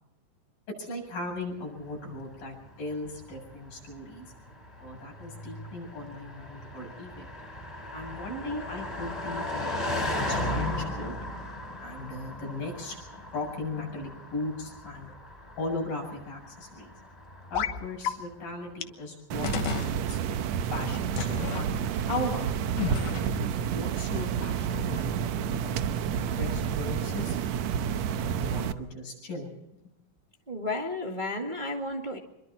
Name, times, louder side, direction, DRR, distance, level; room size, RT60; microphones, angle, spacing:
voice 1, 0.7-4.3 4.8-7.3 7.9-11.2 11.8-13.0 13.3-15.1 15.6-16.9 17.5-20.2 20.7-21.7 22.0-22.7 23.5-27.4 28.2-29.8, left 2 dB, 90° left, 0 dB, 9.4 m, -37 dB
Car passing by, 1.9-18.3, left 1 dB, 10° left, 4.0 m, -37 dB
sound 1, 17.5-17.8 18.0-18.1 18.8-18.9 19.4-19.9 21.2-21.6 22.8-23.5, left 9 dB, 70° left, 2.7 m, -31 dB
sound 2, 19.3-28.7, right 8 dB, 70° right, 1.9 m, -30 dB
voice 2, 30.5-32.2, left 2 dB, 15° right, 1 dB, 1.8 m, -32 dB
26.5 x 23.5 x 4.3 m, 0.89 s
omnidirectional pair, 3.8 m